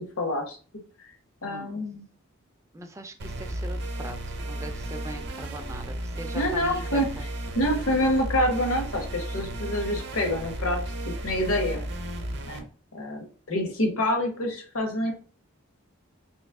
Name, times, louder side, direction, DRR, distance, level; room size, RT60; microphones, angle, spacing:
voice 1, 0.2-0.6 1.4-2.0 6.3-7.1 7.5-10.8 11.2-11.9 12.4-12.6 12.9-15.1, left 1 dB, 70° left, 3 dB, 1.0 m, -26 dB
voice 2, 1.5-1.8 2.7-4.2 4.4-7.2, right 2 dB, 15° right, 7 dB, 0.3 m, -41 dB
sound 1, 3.2-12.6, right 1 dB, 50° right, 0.6 m, -34 dB
3.2 x 3.1 x 3.5 m, 0.40 s
head